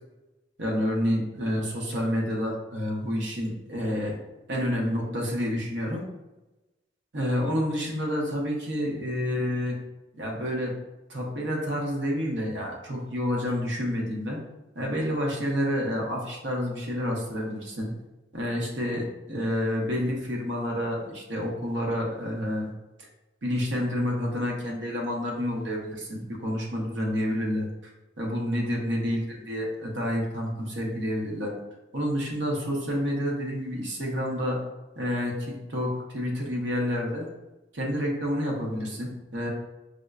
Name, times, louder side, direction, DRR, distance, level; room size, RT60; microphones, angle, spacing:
voice 1, 0.6-4.2 4.5-6.0 7.1-9.8 10.1-10.7 11.1-14.4 14.7-17.9 18.3-22.7 23.4-27.9 28.2-31.5 31.9-34.6 35.0-37.3 37.7-39.5, equal, 75° right, -1 dB, 0.8 m, -29 dB
5.0 x 2.2 x 2.4 m, 1.0 s
head